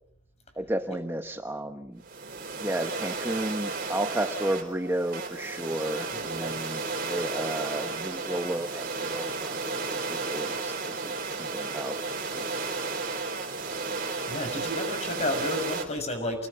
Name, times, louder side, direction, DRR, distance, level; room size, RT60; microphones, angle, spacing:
voice 1, 0.6-2.0 2.6-12.0 12.3-12.5, right 1 dB, 10° right, 6 dB, 1.0 m, -33 dB
sound 1, 2.0-15.8, right 4 dB, 45° right, 4.7 m, -33 dB
voice 2, 6.1-6.8 14.3-16.5, left 1 dB, 30° left, 6 dB, 6.3 m, -32 dB
28.5 x 21.0 x 6.5 m, 0.76 s
head